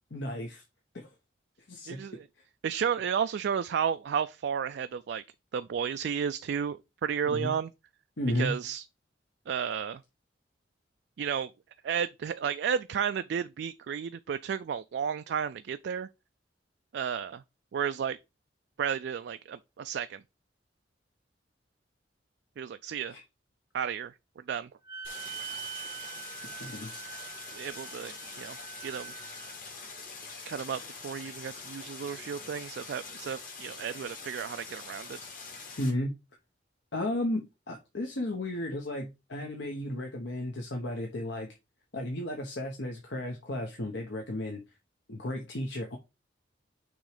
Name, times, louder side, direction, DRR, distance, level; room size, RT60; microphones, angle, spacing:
voice 1, 0.1-0.6 0.9-1.1 1.7-2.0 7.3-7.5 8.2-8.5 23.1-23.2 26.6-26.9 35.8-36.1 36.9-41.5 41.9-44.6 45.1-46.0, left 1 dB, 70° left, 1.1 m, -33 dB
voice 2, 1.9-2.2 2.6-5.2 5.5-7.7 8.3-8.8 9.5-10.0 11.2-11.5 11.8-16.1 16.9-17.4 17.7-18.2 18.8-20.2 22.6-23.1 23.7-24.1 24.5-24.7 27.5-29.1 30.5-35.2, right 7 dB, 65° right, 0.3 m, -32 dB
Wind instrument woodwind instrument, 24.8-29.5, right 10 dB, 20° right, 0.7 m, -44 dB
Stream, 25.0-35.9, left 4 dB, 50° left, 1.9 m, -44 dB
6.2 x 3.2 x 4.9 m
head